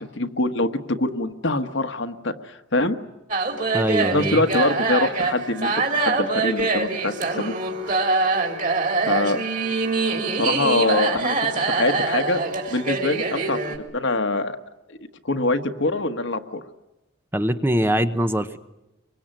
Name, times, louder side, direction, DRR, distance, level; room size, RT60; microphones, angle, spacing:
voice 1, 0.0-2.9 4.1-7.5 9.0-9.4 10.3-12.4 12.7-14.6 14.9-15.0 15.2-16.6, left 2 dB, 60° left, 8 dB, 1.4 m, -24 dB
sound 1, 3.3-13.8, right 3 dB, 40° right, 3.6 m, -24 dB
voice 2, 3.7-4.4 17.3-18.6, equal, 10° right, 9 dB, 0.9 m, -22 dB
25.5 x 24.0 x 9.0 m, 0.96 s
head